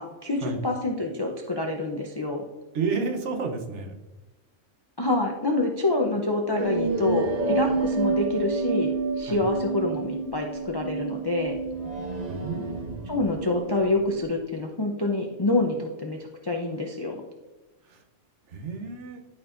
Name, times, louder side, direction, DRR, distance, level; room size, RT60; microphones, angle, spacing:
voice 1, 0.0-2.4 5.0-11.6 13.1-17.2, left 2 dB, 30° left, 1 dB, 0.5 m, -27 dB
voice 2, 2.7-3.9 6.8-6.9 9.3-9.4 12.3-12.9 17.8-18.0 18.5-19.2, right 4 dB, 70° right, 4 dB, 1.2 m, -31 dB
sound 1, 6.6-14.2, right 3 dB, 40° right, 0.7 m, -29 dB
11.5 x 4.3 x 2.5 m, 1.1 s
omnidirectional pair, 1.3 m